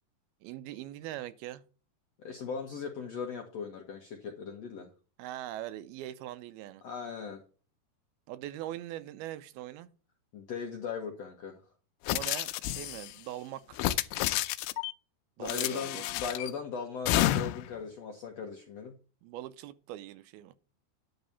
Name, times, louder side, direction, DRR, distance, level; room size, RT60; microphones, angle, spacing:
voice 1, 0.4-1.6 5.2-6.8 8.3-9.9 12.1-13.9 15.4-16.0 19.2-20.5, right 13 dB, 80° right, 2.5 m, -41 dB
voice 2, 2.2-4.9 6.8-7.4 10.3-11.6 15.4-18.9, left 6 dB, 70° left, 1.6 m, -38 dB
sound 1, 12.1-13.1 13.7-14.9 15.5-16.5 17.1-17.7, left 14 dB, 90° left, 2.6 m, -30 dB
10.5 x 3.9 x 6.8 m
omnidirectional pair, 4.5 m